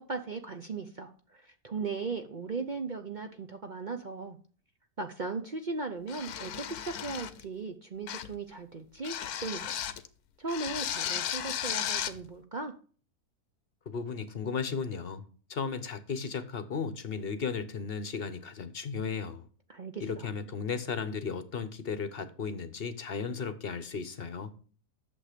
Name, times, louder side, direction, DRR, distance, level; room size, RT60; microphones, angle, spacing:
voice 1, 0.0-4.4 5.0-9.8 10.4-12.7 19.7-20.3, right 4 dB, 45° right, 0.6 m, -37 dB
sound 1, 6.1-7.4 8.1-8.4 9.0-10.1 10.5-12.2, left 10 dB, 80° left, 1.3 m, -35 dB
voice 2, 13.9-15.2 15.5-19.4 20.0-24.5, left 5 dB, 45° left, 0.9 m, -35 dB
8.7 x 7.0 x 5.0 m
omnidirectional pair, 1.6 m